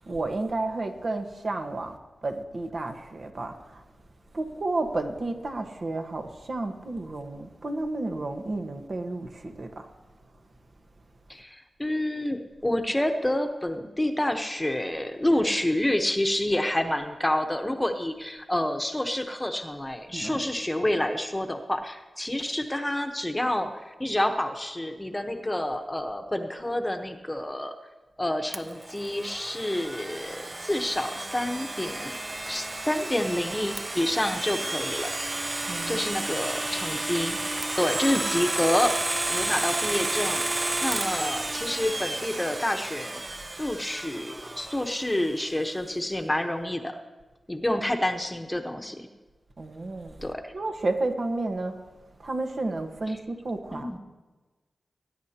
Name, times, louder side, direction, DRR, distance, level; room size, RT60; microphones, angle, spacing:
voice 1, 0.1-1.9 2.2-3.8 4.3-9.9 20.1-20.4 35.7-36.0 49.6-50.2 50.5-51.8 52.2-54.0, right 2 dB, 60° right, 1.3 m, -31 dB
voice 2, 11.3-27.7 28.2-35.1 35.9-37.4 37.7-40.5 40.8-43.2 43.6-47.0 47.5-49.1 50.2-50.5 53.1-53.2 53.7-54.0, left 1 dB, 15° left, 1.0 m, -28 dB
Domestic sounds home sounds, 28.5-45.3, right 2 dB, 30° right, 0.5 m, -32 dB
20.5 x 9.7 x 2.9 m
cardioid pair, 60°, 0 cm